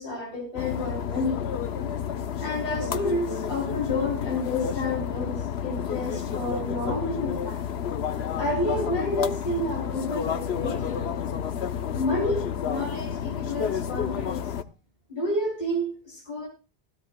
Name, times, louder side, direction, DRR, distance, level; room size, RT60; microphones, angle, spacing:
voice 1, 0.0-1.4 2.4-7.6 8.4-11.2 11.9-14.5 15.1-16.5, left 1 dB, 50° left, -2 dB, 3.8 m, -30 dB
sound 1, 0.6-14.6, left 8 dB, 85° left, 1.0 m, -30 dB
16.0 x 15.0 x 2.2 m, 0.32 s
omnidirectional pair, 1.0 m